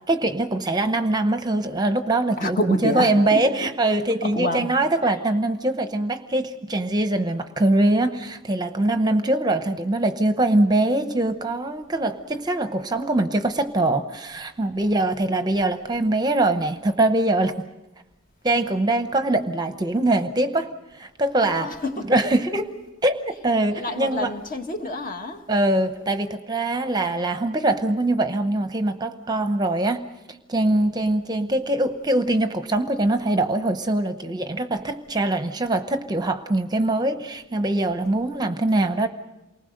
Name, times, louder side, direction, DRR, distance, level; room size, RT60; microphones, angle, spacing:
voice 1, 0.0-17.5 18.4-20.7 20.9-21.7 22.0-22.7 23.0-23.2 23.4-24.3 25.5-30.0 30.5-39.1, right 2 dB, 20° right, 8 dB, 0.8 m, -23 dB
voice 2, 2.4-3.7 4.4-4.7 21.4-22.0 23.7-25.4 26.8-26.9, left 2 dB, 40° left, 4 dB, 1.7 m, -28 dB
28.5 x 20.0 x 6.5 m, 1.0 s
head